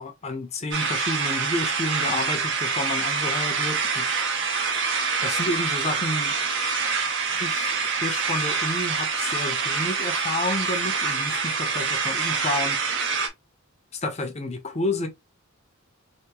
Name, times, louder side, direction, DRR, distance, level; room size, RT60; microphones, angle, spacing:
voice 1, 0.0-4.1 5.2-6.3 7.4-7.8 8.0-12.8 14.0-15.1, left 2 dB, 30° left, 0.7 m, -30 dB
sound 1, 0.7-13.3, right 5 dB, 55° right, 0.7 m, -26 dB
3.4 x 2.7 x 2.9 m
head